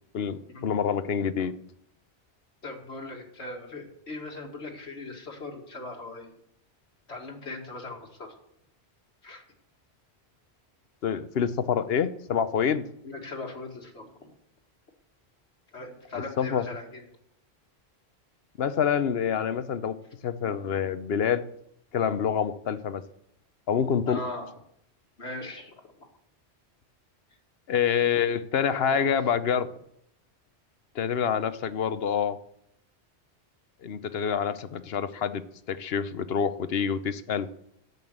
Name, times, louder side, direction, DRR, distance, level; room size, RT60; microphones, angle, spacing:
voice 1, 0.1-1.5 11.0-12.9 16.4-16.6 18.6-20.0 20.2-21.4 21.9-23.0 23.7-24.2 27.7-29.7 30.9-32.4 33.8-35.4 35.7-37.5, left 7 dB, 65° left, 13 dB, 1.0 m, -27 dB
voice 2, 2.6-6.4 7.1-8.3 9.2-9.4 13.0-14.3 15.7-17.0 24.1-24.5 25.2-25.7 28.6-29.4, left 2 dB, 85° left, 1 dB, 2.4 m, -39 dB
11.0 x 8.1 x 7.9 m, 0.72 s
omnidirectional pair, 1.1 m